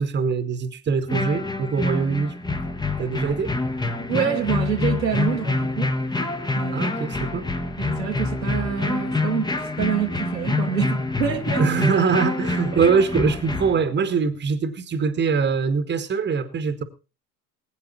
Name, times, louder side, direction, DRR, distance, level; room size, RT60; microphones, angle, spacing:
voice 1, 0.0-2.3 3.0-3.5 6.7-7.4 11.6-16.8, right 5 dB, 20° right, 1.7 m, -23 dB
sound 1, 1.1-13.7, left 3 dB, 10° left, 1.4 m, -26 dB
voice 2, 4.0-5.9 6.5-6.9 7.8-9.5 9.8-11.7, right 8 dB, 85° right, 2.2 m, -26 dB
20.0 x 9.4 x 4.2 m
figure-of-eight pair, 80°, 49 cm